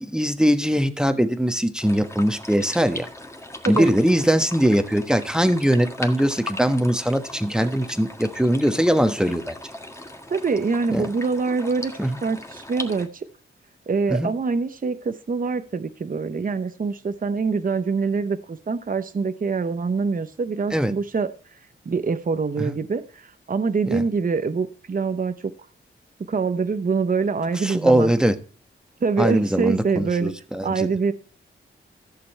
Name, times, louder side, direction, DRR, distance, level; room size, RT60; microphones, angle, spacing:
voice 1, 0.0-3.1 3.7-9.5 10.9-11.1 12.0-12.2 14.1-14.3 20.7-20.9 22.6-22.8 23.9-24.0 27.6-28.3 29.2-30.9, equal, 5° right, 8 dB, 1.3 m, -21 dB
sound 1, 1.8-13.1, left 1 dB, 15° left, 1.6 m, -38 dB
voice 2, 10.3-11.9 12.2-13.3 13.9-21.6 21.9-25.5 26.3-28.1 29.0-30.3 30.6-31.1, right 4 dB, 40° right, 10 dB, 0.8 m, -25 dB
14.5 x 6.8 x 4.4 m, 0.39 s
wide cardioid pair, 85°, 21 cm